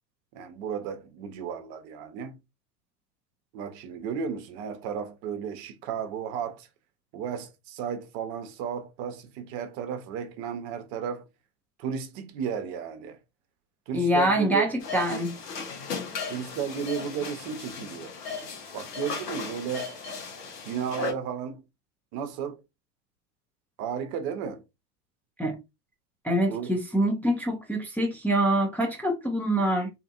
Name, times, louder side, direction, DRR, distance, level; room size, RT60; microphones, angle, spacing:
voice 1, 0.3-2.4 3.5-6.7 7.1-11.2 11.8-13.2 13.9-14.7 16.3-18.1 18.7-20.0 20.6-21.6 22.1-22.6 23.8-24.6 26.5-26.7, right 7 dB, 45° right, 0.8 m, -33 dB
voice 2, 13.9-15.4 25.4-25.6 26.2-29.9, right 1 dB, 5° left, 0.5 m, -25 dB
sound 1, 14.8-21.1, left 5 dB, 75° left, 1.1 m, -36 dB
2.8 x 2.5 x 2.4 m
hypercardioid pair, 90°, 48 cm